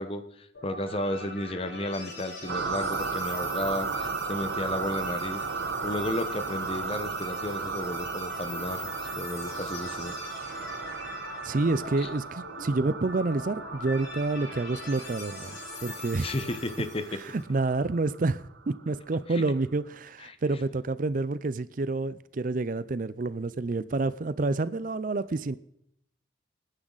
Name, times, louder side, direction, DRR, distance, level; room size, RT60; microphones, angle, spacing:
voice 1, 0.0-5.4 5.8-10.2 12.0-12.1 16.2-17.2 19.3-19.4 20.2-20.4, left 1 dB, 30° left, 1.0 m, -33 dB
sound 1, 0.5-17.4, left 2 dB, 80° left, 5.1 m, -42 dB
sound 2, 2.5-18.7, right 5 dB, 80° right, 1.1 m, -35 dB
voice 2, 11.4-15.5 15.8-16.3 17.1-25.6, right 3 dB, 45° right, 0.5 m, -28 dB
25.5 x 9.8 x 4.0 m
head